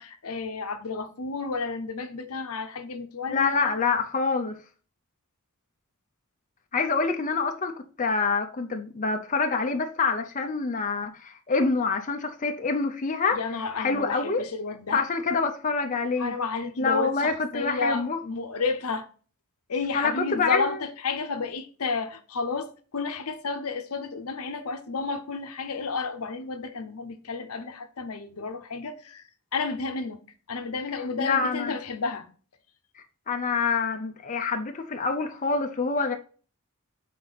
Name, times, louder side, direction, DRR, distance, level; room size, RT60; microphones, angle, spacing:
voice 1, 0.0-3.6 13.3-15.0 16.2-19.1 19.7-29.2 29.5-30.2 30.5-32.3, left 4 dB, 75° left, 0.8 m, -31 dB
voice 2, 3.3-4.6 6.7-13.4 13.8-14.4 14.9-16.3 16.8-18.2 19.9-20.8 31.2-31.7 33.3-36.2, left 4 dB, 35° left, 0.7 m, -26 dB
6.7 x 4.3 x 4.0 m
head